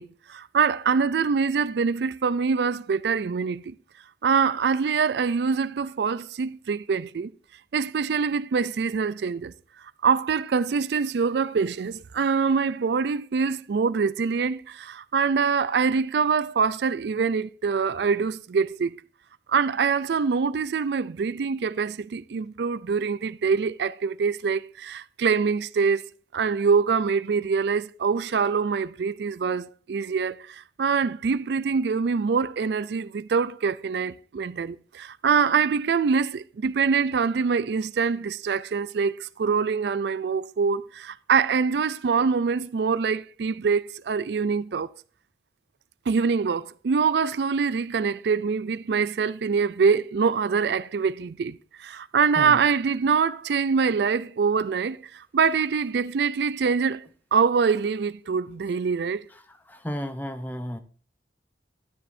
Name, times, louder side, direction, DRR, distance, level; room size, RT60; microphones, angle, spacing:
voice 1, 0.0-3.7 4.2-7.3 7.7-9.5 10.0-19.0 19.5-26.0 26.3-44.9 46.1-57.0 57.3-59.2, right 5 dB, 70° right, 0.4 m, -24 dB
voice 2, 59.7-60.8, equal, 10° left, 0.8 m, -32 dB
12.5 x 10.0 x 2.6 m
head